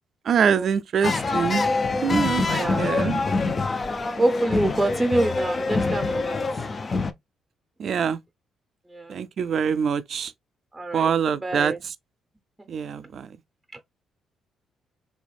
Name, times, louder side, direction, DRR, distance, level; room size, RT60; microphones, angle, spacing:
voice 1, 0.3-1.7 2.0-3.2 7.8-8.2 9.1-10.3 10.9-11.9 12.7-13.3, right 7 dB, 60° right, 0.4 m, -24 dB
sound 1, 1.0-7.1, left 3 dB, 35° left, 0.4 m, -25 dB
voice 2, 2.5-2.9 4.2-6.4 8.9-9.2 10.7-11.1 11.4-11.9, right 1 dB, 10° right, 0.6 m, -26 dB
3.4 x 3.2 x 2.3 m
cardioid pair, 90°, 0 cm